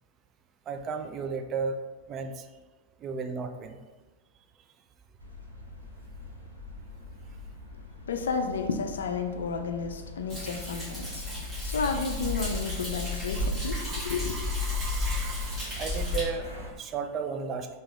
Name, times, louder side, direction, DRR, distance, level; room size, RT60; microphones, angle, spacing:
voice 1, 0.7-1.8 2.1-2.5 3.0-3.8 13.7-17.7, right 5 dB, 30° right, 6 dB, 0.3 m, -35 dB
sound 1, 5.2-16.7, equal, 90° right, 0.6 m, -42 dB
voice 2, 8.1-11.3 11.6-14.4, left 5 dB, 65° left, 7 dB, 0.3 m, -32 dB
Thunder, 10.3-16.2, left 2 dB, 10° right, 1.4 m, -33 dB
3.4 x 2.7 x 3.2 m, 1.3 s
figure-of-eight pair, 90°, 0 cm